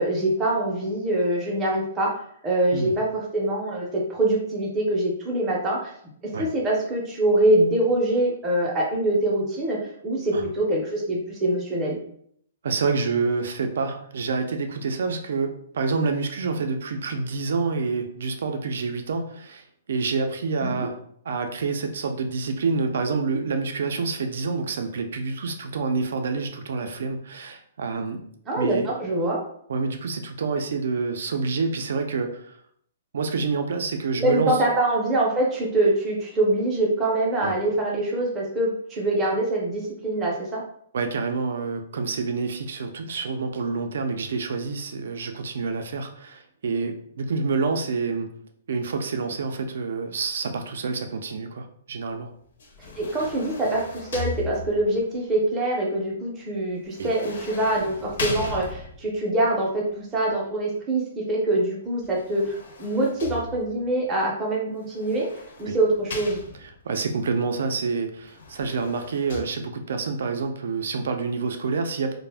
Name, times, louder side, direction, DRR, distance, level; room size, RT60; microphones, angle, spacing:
voice 1, 0.0-2.1 2.4-5.9 6.4-12.0 20.6-20.9 28.5-29.4 34.2-40.6 53.0-65.3 65.6-66.4, right 1 dB, 10° right, -4 dB, 0.5 m, -24 dB
voice 2, 12.6-21.0 21.3-28.2 28.6-28.9 29.7-32.6 33.1-34.6 37.4-37.5 40.9-48.3 48.7-52.3 57.0-57.1 65.7-65.8 66.6-72.1, right 4 dB, 65° right, 6 dB, 0.4 m, -27 dB
sound 1, 52.6-55.0 56.9-59.2 62.0-63.9 64.9-66.9 68.2-69.4, left 4 dB, 60° left, 0.5 m, -37 dB
2.4 x 2.0 x 3.3 m, 0.67 s
hypercardioid pair, 170°, 0 cm